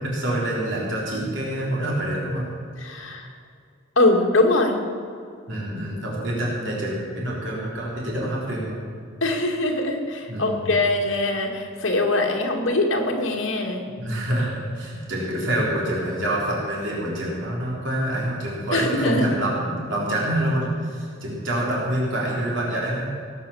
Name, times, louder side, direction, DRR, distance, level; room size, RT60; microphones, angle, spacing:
voice 1, 0.0-2.4 5.5-8.8 10.3-10.7 14.0-23.1, right 1 dB, 65° right, -4 dB, 3.7 m, -26 dB
voice 2, 2.8-3.3 4.0-4.8 9.2-13.8 18.7-19.3, left 2 dB, 70° left, 1 dB, 2.4 m, -22 dB
17.5 x 8.9 x 7.2 m, 2.3 s
head